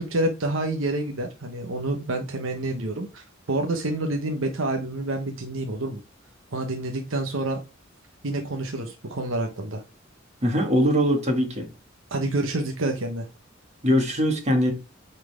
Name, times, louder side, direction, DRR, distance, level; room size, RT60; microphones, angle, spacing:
voice 1, 0.0-6.0 6.5-7.6 8.2-9.8 12.1-13.3, right 2 dB, 80° right, 1.1 m, -28 dB
voice 2, 10.4-11.6 13.8-14.7, equal, 35° right, 2.1 m, -21 dB
8.7 x 4.4 x 3.5 m
head